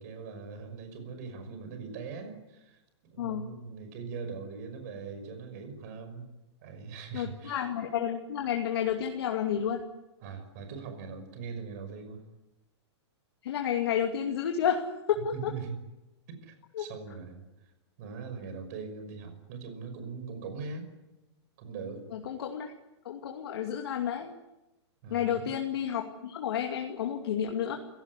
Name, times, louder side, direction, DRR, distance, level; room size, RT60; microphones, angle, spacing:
voice 1, 0.0-6.2 6.6-7.7 10.2-12.2 15.3-15.7 16.3-17.4 18.0-20.9 21.6-22.1 25.0-25.5, right 5 dB, 35° right, 8 dB, 5.8 m, -41 dB
voice 2, 3.2-3.5 7.1-9.8 13.4-15.5 16.7-16.8 22.1-22.7 23.0-24.3 25.1-27.8, left 9 dB, 60° left, 2 dB, 2.5 m, -31 dB
28.0 x 17.5 x 9.7 m, 0.98 s
hypercardioid pair, 175°, 15 cm